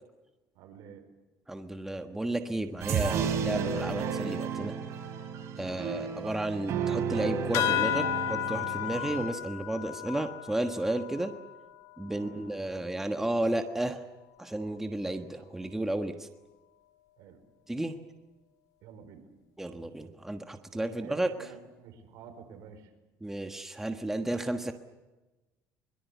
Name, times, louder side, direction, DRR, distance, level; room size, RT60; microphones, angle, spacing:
voice 1, 0.5-1.1 5.6-6.0 12.1-12.5 17.2-17.4 18.8-19.3 20.9-22.9, right 7 dB, 75° right, 7 dB, 4.9 m, -50 dB
voice 2, 1.5-4.7 5.6-11.3 12.0-14.0 14.4-16.3 17.7-18.0 19.6-21.5 23.2-24.7, right 1 dB, 5° right, 6 dB, 1.4 m, -33 dB
sound 1, 2.8-9.3, right 6 dB, 55° right, 4.8 m, -32 dB
sound 2, 7.5-12.5, left 14 dB, 75° left, 2.0 m, -33 dB
23.0 x 23.0 x 8.3 m, 1.1 s
cardioid pair, 130°, 6 cm